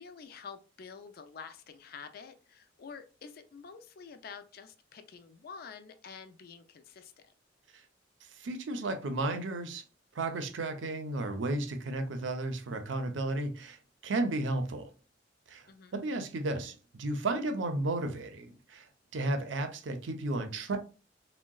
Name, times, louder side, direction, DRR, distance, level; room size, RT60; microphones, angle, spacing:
voice 1, 0.0-7.1 15.7-16.0, left 6 dB, 55° left, 0.4 m, -48 dB
voice 2, 8.4-9.8 10.1-13.8 14.0-14.9 15.5-15.6 15.9-18.9 19.1-20.8, right 2 dB, 90° right, 0.6 m, -33 dB
3.7 x 2.1 x 2.3 m
head